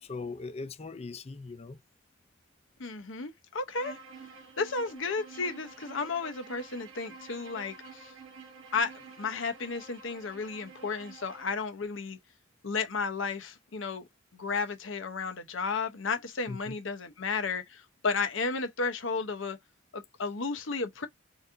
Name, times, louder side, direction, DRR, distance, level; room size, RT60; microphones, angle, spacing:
voice 1, 0.0-1.8 16.5-16.8, left 3 dB, 30° left, 0.4 m, -40 dB
voice 2, 2.8-4.0 4.6-8.1 8.7-12.2 12.6-14.1 14.3-19.6 19.9-21.1, left 4 dB, 80° left, 0.8 m, -33 dB
Bowed string instrument, 3.7-11.6, right 4 dB, 90° right, 1.1 m, -49 dB
4.0 x 2.7 x 2.6 m
head